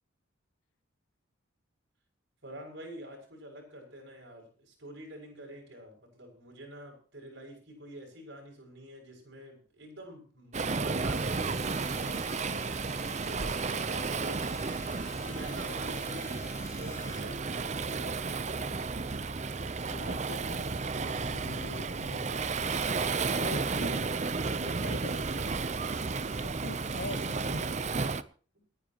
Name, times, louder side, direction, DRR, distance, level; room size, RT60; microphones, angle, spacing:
voice 1, 2.4-12.7 13.2-16.4 16.8-18.9, equal, 65° right, 6.8 m, -47 dB
Waves surf, 10.5-28.2, right 4 dB, 35° right, 0.6 m, -33 dB
sound 1, 11.0-17.2, left 3 dB, 15° left, 3.8 m, -50 dB
voice 2, 19.9-22.4 23.4-24.2 24.5-25.9 26.4-27.7, left 3 dB, 70° left, 1.1 m, -44 dB
28.0 x 10.0 x 3.0 m
head